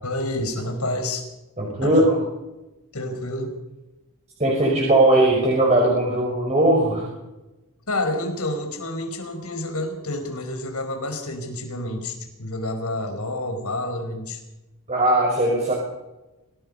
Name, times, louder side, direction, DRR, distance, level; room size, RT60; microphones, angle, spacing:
voice 1, 0.0-1.3 1.8-2.1 2.9-3.6 7.9-14.4, left 1 dB, 85° left, 5 dB, 5.1 m, -29 dB
voice 2, 1.6-2.2 4.4-7.1 14.9-15.7, right 1 dB, 30° right, -2 dB, 5.6 m, -19 dB
26.0 x 18.5 x 5.5 m, 1.0 s
head